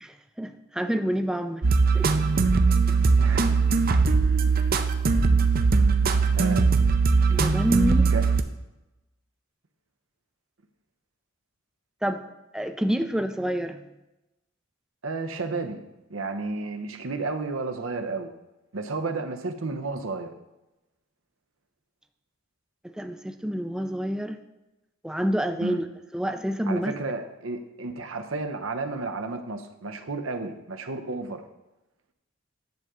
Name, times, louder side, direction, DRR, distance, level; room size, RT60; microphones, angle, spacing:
voice 1, 0.0-1.6 1.9-2.1 7.3-8.1 12.0-12.2 12.5-13.8 22.8-24.4 25.0-25.8 26.1-26.9, right 1 dB, 5° right, 7 dB, 0.4 m, -28 dB
sound 1, 1.6-8.4, right 4 dB, 50° right, 0.6 m, -20 dB
voice 2, 3.2-3.5 6.4-6.7 7.9-8.2 15.0-15.8 16.1-18.3 18.7-20.3 25.6-25.8 26.7-31.4, right 3 dB, 85° right, 6 dB, 0.9 m, -32 dB
10.5 x 3.7 x 6.8 m, 0.98 s
head